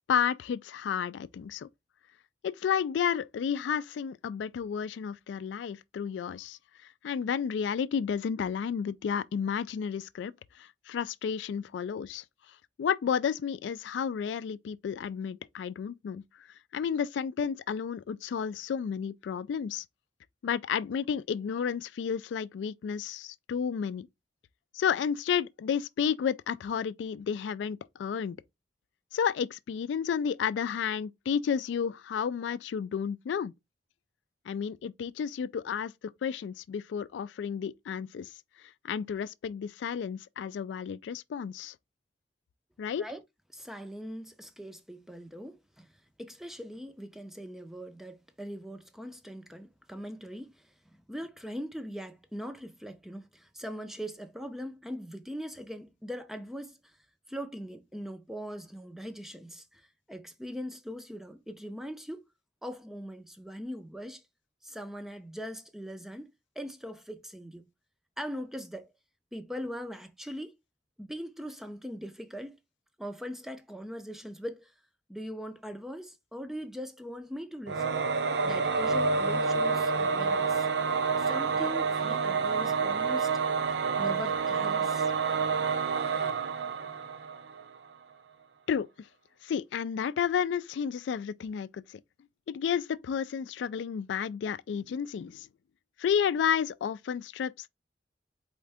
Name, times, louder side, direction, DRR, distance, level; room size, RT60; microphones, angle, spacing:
voice 1, 0.1-1.7 2.4-6.6 7.0-10.3 10.6-12.2 12.8-16.2 16.7-19.8 20.4-24.1 24.7-28.4 29.1-33.5 34.5-35.9 36.2-38.3 38.8-41.7 42.8-43.1 88.7-88.9 89.4-92.0 92.5-95.5 96.0-97.7, left 7 dB, 80° left, 0.3 m, -31 dB
voice 2, 43.5-45.9 46.2-57.0 57.3-62.2 62.6-64.2 64.6-67.7 68.2-68.9 69.3-70.5 71.0-72.6 73.0-74.7 75.1-78.0 78.4-80.7 81.2-83.3 83.6-85.1, equal, ahead, 0.5 m, -41 dB
Singing / Musical instrument, 77.7-87.7, right 5 dB, 65° right, 0.6 m, -28 dB
4.3 x 3.6 x 3.4 m
head